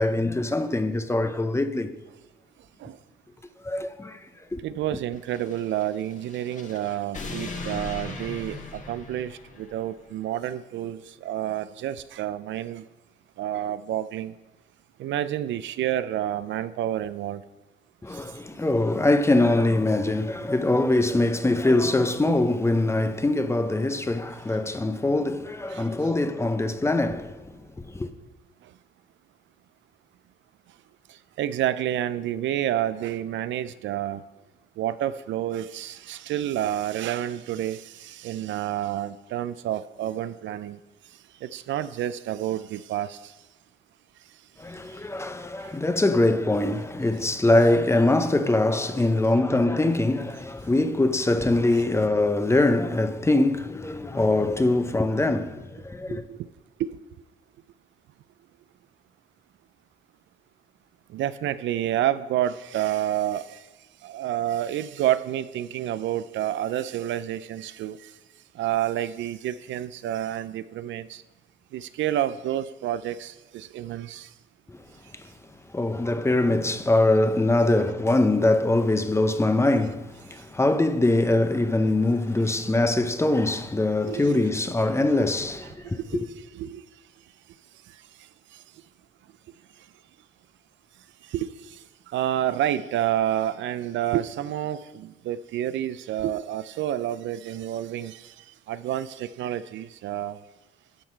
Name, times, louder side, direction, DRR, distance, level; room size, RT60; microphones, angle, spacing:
voice 1, 0.0-1.9 3.6-4.2 4.5-4.6 18.0-27.5 27.8-28.1 44.6-56.2 74.7-74.8 75.7-86.3, left 2 dB, 15° left, 0.6 m, -23 dB
voice 2, 4.6-12.8 13.4-14.3 15.0-17.4 18.1-18.2 25.7-25.9 31.4-34.2 34.8-40.8 41.4-43.3 45.6-45.7 56.1-56.4 56.8-56.9 61.1-63.6 64.0-68.1 68.6-71.2 71.7-74.3 82.5-82.6 84.1-84.5 86.5-86.8 91.3-91.8 92.1-98.3 98.7-100.4, right 12 dB, 70° right, 0.4 m, -29 dB
sound 1, 5.2-9.9, left 3 dB, 40° left, 1.4 m, -39 dB
11.5 x 5.9 x 4.5 m
cardioid pair, 90°, 20 cm